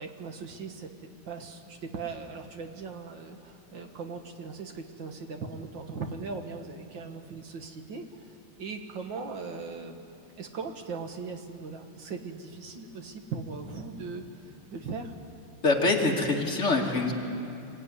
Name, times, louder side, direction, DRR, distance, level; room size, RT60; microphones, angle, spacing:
voice 1, 0.0-10.1 10.4-15.1, right 4 dB, 65° right, 5 dB, 2.0 m, -39 dB
voice 2, 15.6-17.1, left 3 dB, 35° left, -1 dB, 2.4 m, -24 dB
25.0 x 15.5 x 9.7 m, 2.7 s
omnidirectional pair, 2.3 m